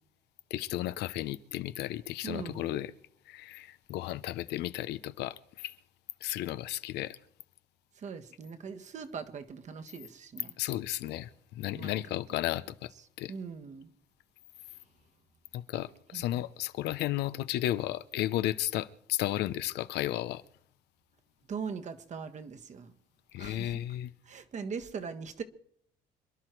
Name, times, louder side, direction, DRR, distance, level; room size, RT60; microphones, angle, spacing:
voice 1, 0.5-2.9 3.3-5.8 6.2-7.2 10.6-12.9 13.2-13.3 15.5-20.4 23.3-24.1, left 14 dB, 80° left, 0.8 m, -34 dB
voice 2, 2.2-2.8 7.9-10.5 11.7-12.0 13.3-13.9 16.1-16.4 21.5-22.9 23.4-23.8 24.2-25.4, right 6 dB, 45° right, 1.4 m, -41 dB
26.5 x 11.0 x 4.6 m
cardioid pair, 110°, 17 cm